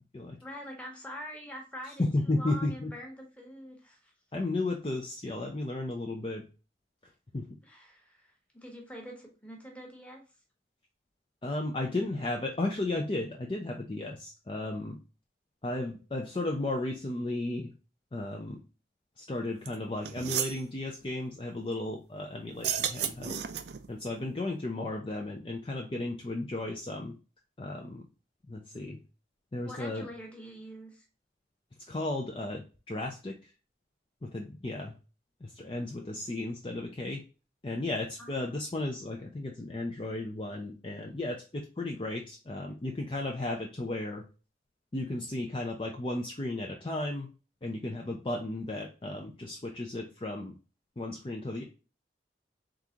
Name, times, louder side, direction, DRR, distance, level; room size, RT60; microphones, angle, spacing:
voice 1, 0.4-4.1 7.6-10.2 29.6-31.1 38.2-38.4, equal, 5° left, 0 dB, 1.1 m, -45 dB
voice 2, 2.0-2.9 4.3-6.5 7.3-7.6 11.4-15.0 15.6-17.7 18.1-18.6 19.2-23.4 23.9-27.1 27.6-28.1 28.5-29.0 29.5-30.1 31.9-33.5 34.2-35.0 35.4-37.2 37.6-44.2 44.9-47.3 47.6-50.6 51.0-51.6, left 2 dB, 30° left, 1 dB, 0.5 m, -34 dB
sound 1, 19.6-19.7 20.0-20.6 22.5-23.9, right 9 dB, 65° right, 0.4 m, -32 dB
3.8 x 3.6 x 2.8 m, 0.33 s
head